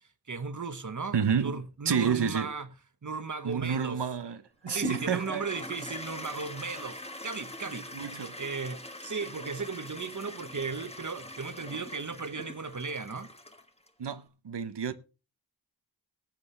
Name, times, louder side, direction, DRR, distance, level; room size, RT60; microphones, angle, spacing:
voice 1, 0.3-2.7 3.0-4.0 4.7-13.3, right 4 dB, 45° right, 1.2 m, -36 dB
voice 2, 1.1-1.6 1.9-2.5 3.4-5.4 7.9-8.4 14.0-14.9, right 7 dB, 90° right, 0.9 m, -30 dB
Toilet flush, 4.7-13.9, left 1 dB, 15° left, 1.4 m, -43 dB
19.5 x 8.0 x 3.3 m
wide cardioid pair, 70°, 40 cm